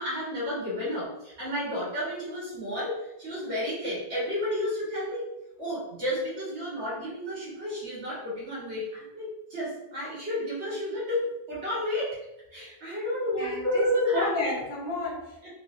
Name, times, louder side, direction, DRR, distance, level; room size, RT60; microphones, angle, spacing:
voice 1, 0.0-5.3 5.6-12.2 12.5-14.4, left 1 dB, 85° right, -8 dB, 1.8 m, -31 dB
voice 2, 13.4-13.9 14.1-15.5, left 2 dB, 50° left, -4 dB, 1.0 m, -31 dB
3.2 x 3.1 x 2.5 m, 0.92 s
omnidirectional pair, 1.1 m